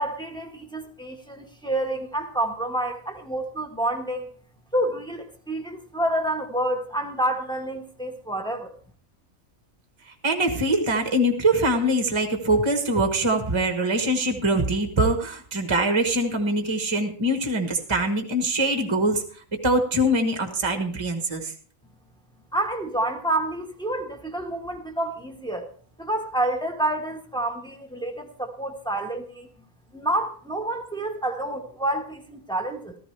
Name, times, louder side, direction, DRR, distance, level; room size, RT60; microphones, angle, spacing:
voice 1, 0.0-4.3 4.7-8.7 22.5-25.7 26.0-29.5 29.9-33.0, right 1 dB, 5° left, 1.1 m, -28 dB
voice 2, 10.1-21.5, right 1 dB, 20° right, 1.1 m, -23 dB
14.5 x 13.5 x 3.3 m
omnidirectional pair, 1.5 m